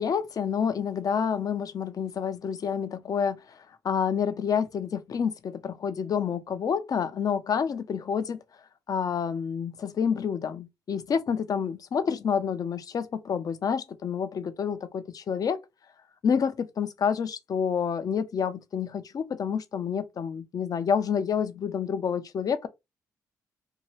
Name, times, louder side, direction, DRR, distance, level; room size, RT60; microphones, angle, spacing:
voice 1, 0.0-8.4 8.9-15.6 16.2-22.7, left 7 dB, 50° left, 0.5 m, -28 dB
2.7 x 2.2 x 3.0 m
hypercardioid pair, 45°, 8 cm